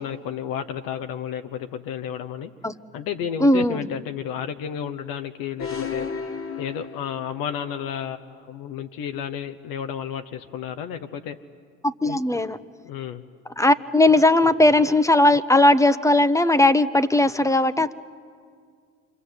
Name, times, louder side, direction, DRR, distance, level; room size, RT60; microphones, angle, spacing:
voice 1, 0.0-2.5 2.9-6.1 6.6-11.4 12.0-12.2 12.8-13.2, left 8 dB, 65° left, 7 dB, 1.3 m, -32 dB
voice 2, 3.4-3.9 12.0-12.6 13.6-17.9, left 2 dB, 10° left, 14 dB, 1.0 m, -18 dB
sound 1, 5.6-7.6, left 5 dB, 35° left, 2.0 m, -33 dB
28.0 x 25.5 x 8.1 m, 2.1 s
hypercardioid pair, 75°, 38 cm